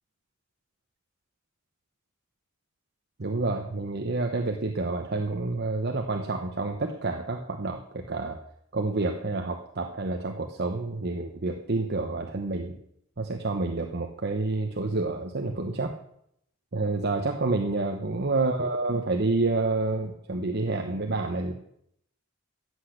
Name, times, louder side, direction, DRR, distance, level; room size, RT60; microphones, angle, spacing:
voice 1, 3.2-8.4 8.7-12.8 13.2-15.9 16.7-21.5, right 3 dB, 55° right, 3 dB, 1.0 m, -28 dB
14.0 x 8.3 x 6.6 m, 0.72 s
head